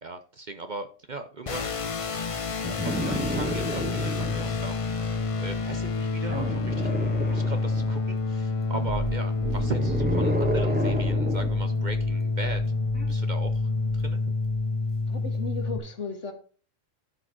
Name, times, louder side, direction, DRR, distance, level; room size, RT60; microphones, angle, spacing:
voice 1, 0.0-1.7 2.8-6.9 7.2-12.6 13.1-13.6 14.0-14.3, right 3 dB, 45° right, 9 dB, 0.8 m, -38 dB
sound 1, 1.5-15.8, left 3 dB, 35° left, 0.5 m, -28 dB
sound 2, 2.6-4.6 6.3-8.0 9.3-11.6 12.9-13.1, equal, 5° right, 1.8 m, -31 dB
sound 3, 8.7-14.2 14.4-15.1, right 7 dB, 75° right, 0.3 m, -38 dB
voice 2, 15.1-16.3, left 3 dB, 65° left, 6 dB, 1.8 m, -35 dB
12.0 x 5.0 x 4.4 m, 0.40 s
omnidirectional pair, 1.3 m